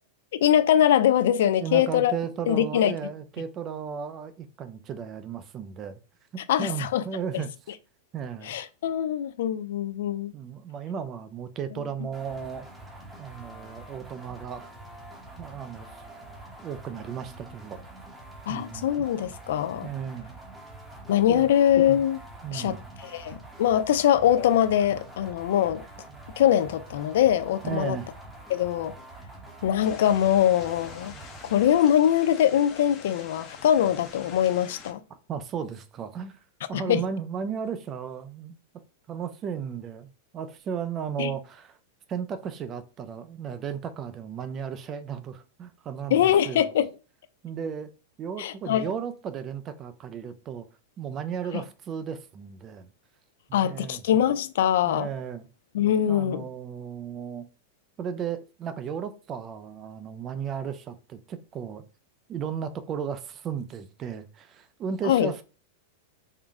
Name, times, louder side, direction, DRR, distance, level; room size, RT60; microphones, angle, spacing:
voice 1, 0.4-2.1 2.5-2.9 6.5-7.0 7.3-7.4 8.4-10.3 18.5-19.9 21.1-22.2 22.5-22.8 23.0-25.8 26.4-28.0 28.5-28.9 29.6-31.1 31.5-35.0 36.7-37.0 41.2-41.3 46.1-46.9 48.4-48.9 53.5-55.1 55.7-56.5 65.0-65.3, left 10 dB, 70° left, 0.4 m, -23 dB
voice 2, 1.6-6.0 6.3-7.5 8.1-8.6 10.3-12.7 13.2-14.7 15.4-16.0 16.6-17.8 18.5-18.9 19.8-20.3 21.3-21.5 22.4-22.8 27.6-28.1 35.3-36.4 36.7-38.5 39.1-41.8 42.1-46.7 47.4-47.9 48.2-50.7 51.0-52.9 53.5-54.0 54.8-55.5 56.1-57.5 58.0-61.8 62.3-65.4, right 7 dB, 25° right, 0.3 m, -35 dB
sound 1, 12.1-31.9, right 2 dB, 10° right, 0.8 m, -45 dB
sound 2, 29.8-34.9, left 5 dB, 25° left, 0.7 m, -46 dB
3.7 x 2.1 x 3.4 m
supercardioid pair, 155°, 0 cm